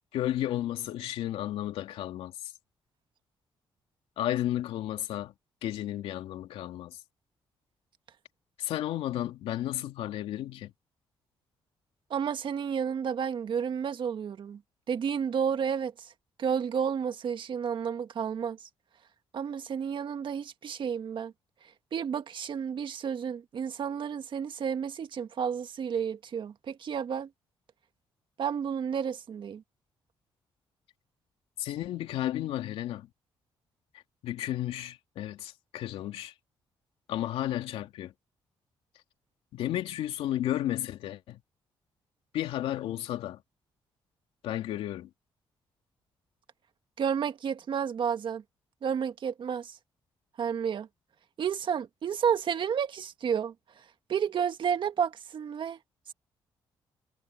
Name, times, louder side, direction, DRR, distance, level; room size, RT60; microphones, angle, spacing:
voice 1, 0.1-2.3 4.2-5.3 5.6-7.0 8.6-10.7 31.6-33.1 34.2-36.3 37.1-38.1 39.5-41.4 42.3-43.4 44.4-45.1, left 13 dB, 85° left, 2.7 m, -33 dB
voice 2, 12.1-14.6 14.9-16.1 16.4-18.6 19.3-21.3 21.9-27.3 28.4-29.6 47.0-48.4 48.8-49.7 50.4-50.9 51.4-53.5 54.1-55.8, right 7 dB, 60° right, 1.8 m, -31 dB
cardioid pair, 75°, 10 cm